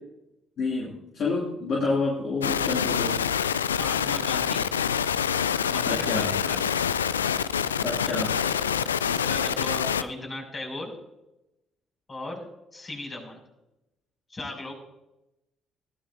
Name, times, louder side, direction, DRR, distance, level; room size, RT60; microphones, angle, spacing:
voice 1, 0.6-3.2 5.8-6.3 7.8-8.4, left 3 dB, 50° left, -3 dB, 2.7 m, -28 dB
sound 1, 2.4-10.0, left 8 dB, 85° left, 0.4 m, -26 dB
voice 2, 3.7-4.7 5.6-6.6 8.1-10.9 12.1-12.4 12.7-13.4 14.3-14.7, left 2 dB, 30° left, 0 dB, 6.4 m, -37 dB
20.5 x 15.0 x 2.7 m, 0.91 s
figure-of-eight pair, 45°, 0 cm